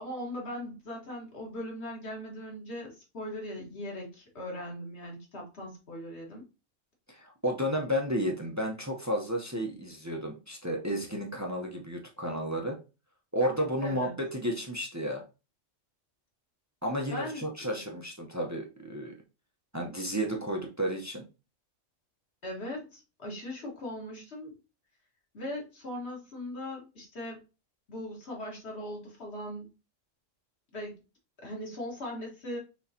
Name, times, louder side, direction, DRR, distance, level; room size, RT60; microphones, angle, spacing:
voice 1, 0.0-6.4 13.8-14.1 17.1-17.7 22.4-24.6 25.3-27.4 27.9-29.7 30.7-30.9 31.4-32.6, left 1 dB, 60° left, -1 dB, 2.0 m, -39 dB
voice 2, 7.1-12.8 13.3-15.2 16.8-19.2 19.7-21.2, equal, 15° right, 1 dB, 0.7 m, -32 dB
6.2 x 3.1 x 2.8 m, 0.30 s
omnidirectional pair, 1.3 m